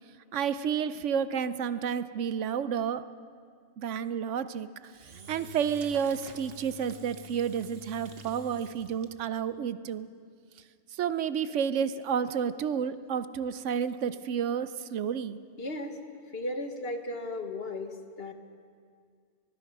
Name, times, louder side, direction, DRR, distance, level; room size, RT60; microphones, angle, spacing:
voice 1, 0.3-3.0 3.8-4.7 5.3-10.1 11.0-15.4, right 7 dB, 75° right, 14 dB, 1.0 m, -30 dB
Engine / Drill, 4.8-9.4, right 1 dB, 55° right, 1.4 m, -48 dB
voice 2, 15.6-16.0 16.3-18.3, left 1 dB, 55° left, 6 dB, 1.6 m, -35 dB
24.5 x 20.0 x 5.4 m, 2.1 s
omnidirectional pair, 1.3 m